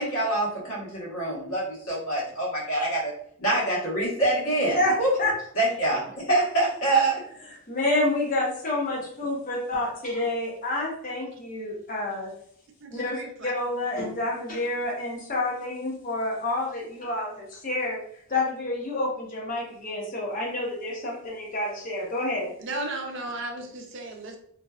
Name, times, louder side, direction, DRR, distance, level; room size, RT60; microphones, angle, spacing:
voice 1, 0.0-3.1 3.4-5.1 5.6-7.2, right 2 dB, 80° left, -5 dB, 1.2 m, -25 dB
voice 2, 4.7-5.3 7.7-12.3 12.9-18.0 18.3-22.5, left 2 dB, 40° left, -2 dB, 0.7 m, -28 dB
voice 3, 12.8-13.5 22.6-24.4, right 2 dB, 55° right, 3 dB, 0.4 m, -35 dB
2.6 x 2.1 x 2.3 m, 0.66 s
head